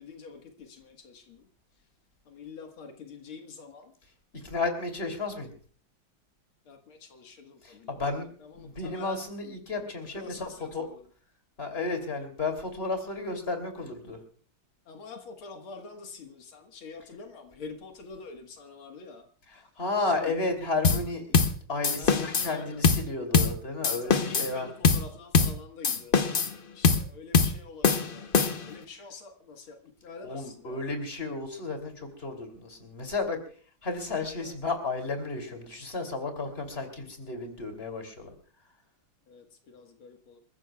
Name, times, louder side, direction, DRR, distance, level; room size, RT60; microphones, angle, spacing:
voice 1, 0.0-1.4 2.3-3.9 6.7-8.1 8.5-9.2 10.1-11.0 14.9-19.2 20.0-20.4 22.0-22.8 24.0-26.3 26.7-28.3 28.6-30.9 34.4-34.5 39.3-40.4, left 4 dB, 85° left, 4 dB, 2.4 m, -46 dB
voice 2, 4.3-5.5 7.6-8.2 8.5-10.9 11.6-14.2 19.5-21.3 21.7-24.7 30.2-33.4 33.8-38.3, left 3 dB, 30° left, 6 dB, 3.2 m, -33 dB
sound 1, 20.8-21.1 21.3-21.6 21.8-22.5 22.8-23.1 23.3-23.6 23.8-24.5 24.8-25.1 25.3-25.6 25.8-26.5 26.8-27.1 27.3-27.6 27.8-28.7, left 5 dB, 45° left, 0.7 m, -23 dB
28.0 x 14.5 x 2.3 m, 0.44 s
omnidirectional pair, 2.2 m